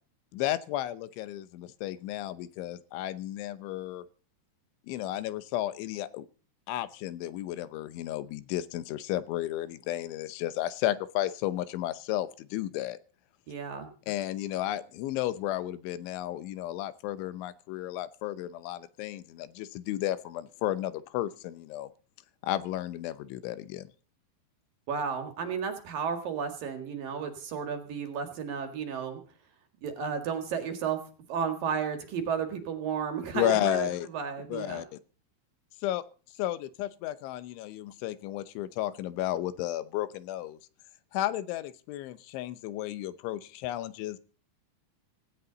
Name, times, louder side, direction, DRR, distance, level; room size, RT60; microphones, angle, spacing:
voice 1, 0.3-4.0 4.9-6.3 6.7-13.0 14.1-21.9 22.4-23.9 33.3-34.1 34.5-35.0 35.8-36.0 36.4-40.6 41.1-44.2, left 14 dB, 80° left, 14 dB, 3.3 m, -33 dB
voice 2, 13.5-13.9 24.9-29.2 29.8-31.0 31.3-34.8, right 6 dB, 55° right, 6 dB, 3.1 m, -33 dB
18.0 x 17.0 x 4.0 m, 0.38 s
omnidirectional pair, 5.4 m